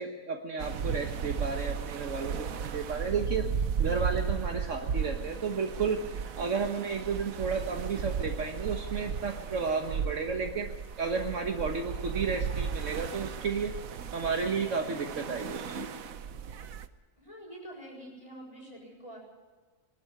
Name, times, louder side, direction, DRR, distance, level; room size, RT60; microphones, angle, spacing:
voice 1, 0.0-3.4 3.8-10.7 11.0-13.7 14.1-15.9, right 5 dB, 65° right, 3 dB, 1.6 m, -32 dB
sound 1, 0.6-16.9, right 7 dB, 90° right, 1.4 m, -35 dB
voice 2, 17.2-19.2, right 1 dB, 25° left, -1 dB, 7.2 m, -46 dB
22.0 x 12.5 x 9.5 m, 1.4 s
omnidirectional pair, 1.4 m